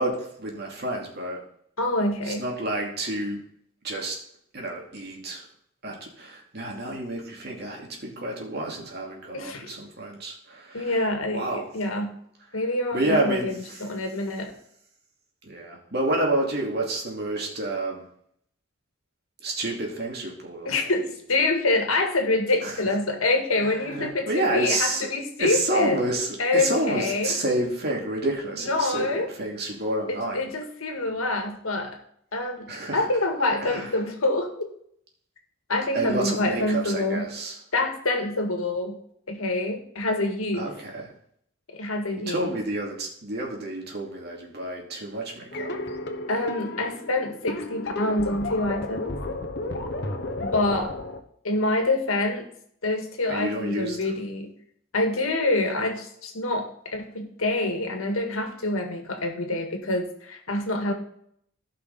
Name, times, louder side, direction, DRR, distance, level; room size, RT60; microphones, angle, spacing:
voice 1, 0.0-1.4 2.2-3.4 3.8-4.2 4.5-5.5 5.8-11.0 11.3-11.7 12.9-13.8 15.4-18.0 19.4-20.9 22.6-22.8 23.6-25.1 25.4-30.5 32.7-33.0 33.6-33.9 35.9-37.6 40.5-41.1 42.3-45.7 53.3-54.3, right 1 dB, 50° right, -1 dB, 2.6 m, -29 dB
voice 2, 1.8-2.5 9.3-9.7 10.7-12.2 12.5-13.5 13.8-14.5 20.7-26.0 26.4-27.3 28.7-29.3 30.1-32.0 32.3-32.7 32.9-34.5 35.7-37.3 37.7-39.0 39.3-40.7 41.7-42.5 46.3-49.2 50.4-50.9 51.4-52.5 52.8-54.5 54.9-60.9, left 2 dB, 90° left, 4 dB, 1.8 m, -26 dB
sound 1, 45.5-51.2, left 2 dB, 55° left, 1.1 m, -33 dB
16.0 x 5.7 x 4.1 m, 0.68 s
head